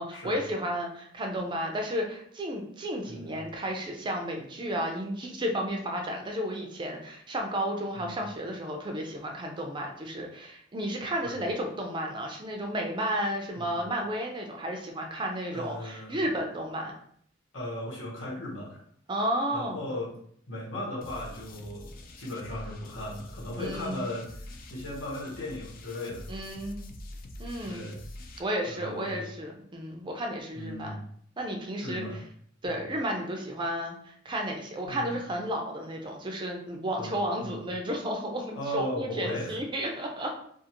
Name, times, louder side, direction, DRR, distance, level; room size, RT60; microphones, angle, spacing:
voice 1, 0.0-17.0 19.1-19.8 23.6-24.0 26.3-26.8 27.4-27.8 28.4-31.0 31.4-32.0 32.6-40.3, equal, 25° right, 2 dB, 0.4 m, -32 dB
voice 2, 3.1-3.4 7.9-8.2 11.1-11.4 13.5-13.7 15.5-16.2 17.5-18.8 19.5-20.1 20.5-26.3 27.6-28.0 28.7-29.2 30.5-31.0 31.8-32.2 32.6-32.8 34.8-35.2 37.0-37.1 37.4-37.6 38.5-39.6, left 1 dB, 80° left, -5 dB, 1.1 m, -37 dB
sound 1, 21.0-28.4, left 1 dB, 45° left, 0.3 m, -45 dB
2.5 x 2.4 x 2.8 m, 0.65 s
head